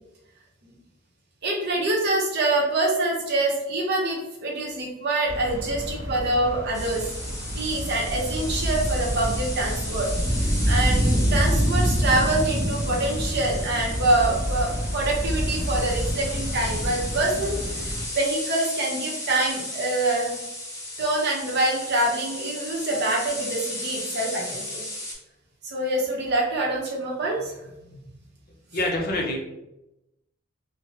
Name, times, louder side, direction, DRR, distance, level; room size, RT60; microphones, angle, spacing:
voice 1, 1.4-7.0 7.5-10.1 10.4-17.9 18.1-20.4 21.0-24.8 25.6-27.5 28.7-28.8, right 2 dB, 55° right, -2 dB, 0.8 m, -25 dB
sound 1, 5.3-18.1, equal, 15° right, 0.6 m, -27 dB
sound 2, 6.7-25.1, left 1 dB, 15° left, 0.9 m, -35 dB
voice 2, 28.7-29.4, left 1 dB, 45° left, 1 dB, 0.5 m, -25 dB
3.2 x 2.1 x 2.8 m, 0.91 s
head